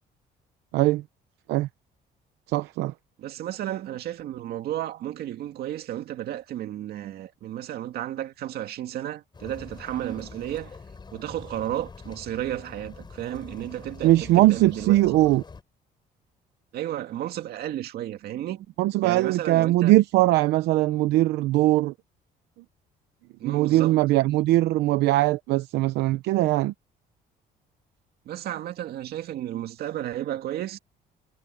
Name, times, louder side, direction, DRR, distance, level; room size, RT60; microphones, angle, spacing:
voice 1, 0.7-1.0 1.5-1.7 2.5-2.9 14.0-15.4 18.8-21.9 23.4-26.7, right 17 dB, 85° right, 0.8 m, -21 dB
voice 2, 3.2-10.8 11.1-15.0 16.7-18.7 19.0-19.9 23.4-24.0 28.3-30.8, right 12 dB, 70° right, 2.2 m, -33 dB
sound 1, 9.3-15.6, left 4 dB, 25° left, 5.4 m, -44 dB
cardioid pair, 110°, 17 cm